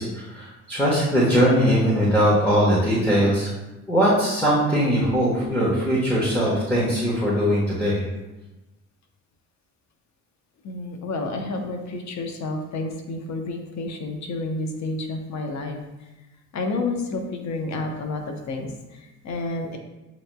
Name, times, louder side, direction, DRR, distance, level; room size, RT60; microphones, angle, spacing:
voice 1, 0.0-3.5 3.9-8.0, equal, 5° left, -7 dB, 1.2 m, -20 dB
voice 2, 10.6-15.8 16.5-19.8, left 2 dB, 65° left, 3 dB, 0.8 m, -30 dB
7.6 x 3.0 x 2.2 m, 1.0 s
cardioid pair, 90°, 30 cm